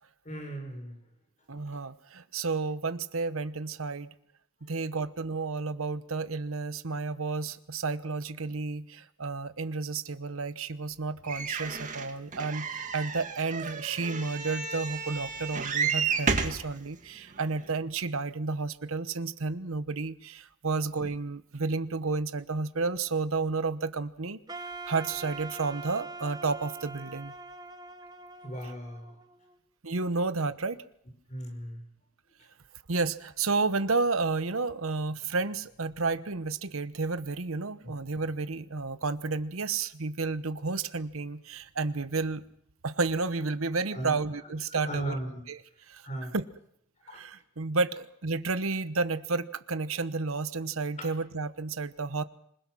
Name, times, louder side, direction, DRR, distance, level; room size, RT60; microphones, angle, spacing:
voice 1, 0.2-1.0 28.4-29.2 31.3-31.8 43.9-44.2 44.7-45.4 46.0-46.4 47.1-47.2 51.0-51.1, right 1 dB, 35° left, 5 dB, 5.6 m, -37 dB
voice 2, 1.5-4.1 4.6-24.4 24.9-27.3 29.8-30.8 32.9-42.4 42.8-45.2 45.5-45.6 45.9-46.1 46.3-46.4 47.1-52.2, right 3 dB, 75° right, 12 dB, 1.1 m, -31 dB
sound 1, 11.3-16.6 17.4-17.5 17.7-17.8, right 5 dB, 35° right, 2.0 m, -32 dB
Wind instrument woodwind instrument, 24.5-29.5, right 3 dB, 20° right, 1.2 m, -43 dB
26.5 x 21.0 x 6.2 m, 0.71 s
head